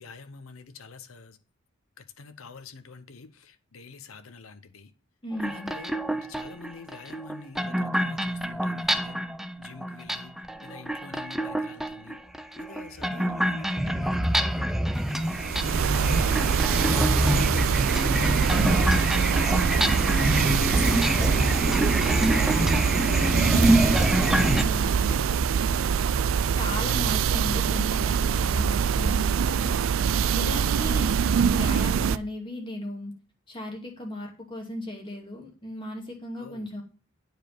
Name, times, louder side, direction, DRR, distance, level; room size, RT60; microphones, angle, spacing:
voice 1, 0.0-1.4 2.2-4.9 5.4-9.2 9.6-10.3 10.6-12.2 12.6-15.3 15.9-19.5 20.1-21.7 22.0-23.9 24.3-25.8 36.4-36.7, left 4 dB, 90° left, 0.9 m, -46 dB
voice 2, 5.2-5.7 19.7-20.1 24.6-25.1 26.5-29.8 30.3-33.1 33.5-36.8, left 1 dB, 25° left, 2.5 m, -36 dB
sound 1, 5.3-24.6, equal, ahead, 0.5 m, -26 dB
sound 2, 15.2-32.2, right 7 dB, 75° right, 0.4 m, -24 dB
9.2 x 5.1 x 5.9 m
head